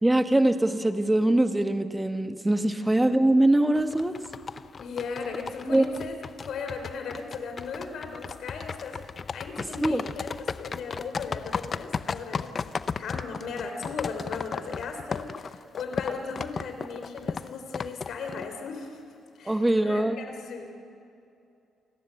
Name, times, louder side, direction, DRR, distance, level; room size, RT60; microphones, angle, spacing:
voice 1, 0.0-4.1 5.7-5.8 9.8-10.0 19.4-20.2, right 1 dB, 10° right, 9 dB, 1.3 m, -22 dB
sound 1, 3.7-18.7, left 5 dB, 40° left, 0.7 m, -35 dB
voice 2, 4.8-6.1 6.4-12.7 13.0-19.0 19.4-20.7, left 5 dB, 70° left, 5 dB, 3.5 m, -37 dB
29.5 x 13.0 x 8.2 m, 2.6 s
cardioid pair, 90°, 0 cm